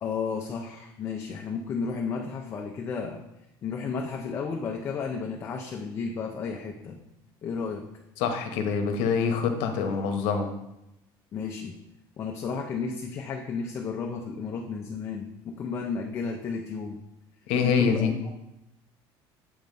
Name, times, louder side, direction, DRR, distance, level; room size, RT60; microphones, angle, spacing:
voice 1, 0.0-3.2 3.6-7.0 7.4-7.9 11.3-11.8 12.2-17.0 17.6-18.3, left 5 dB, 30° left, 0 dB, 0.5 m, -33 dB
voice 2, 8.2-10.5 17.5-18.1, left 6 dB, 75° left, 6 dB, 0.9 m, -25 dB
7.8 x 3.1 x 5.3 m, 0.88 s
cardioid pair, 170°, 10 cm